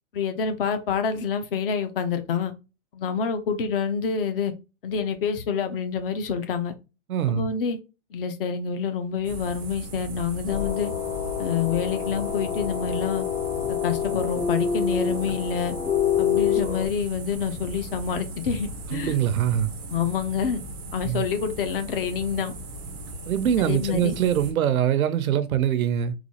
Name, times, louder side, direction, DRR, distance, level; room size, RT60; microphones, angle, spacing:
voice 1, 0.1-2.5 2.9-4.5 4.8-6.7 7.3-7.8 8.1-10.9 11.4-13.3 13.7-15.7 16.2-19.1 19.9-20.6 20.9-22.5 23.6-24.1, left 6 dB, 45° left, 0.6 m, -27 dB
voice 2, 7.1-7.5 18.9-19.7 21.0-21.2 23.3-26.1, right 10 dB, 90° right, 0.7 m, -23 dB
sound 1, 9.2-24.5, right 1 dB, 15° right, 0.4 m, -37 dB
sound 2, 10.5-16.9, left 7 dB, 65° left, 1.8 m, -27 dB
4.0 x 2.3 x 3.0 m
hypercardioid pair, 155°, 41 cm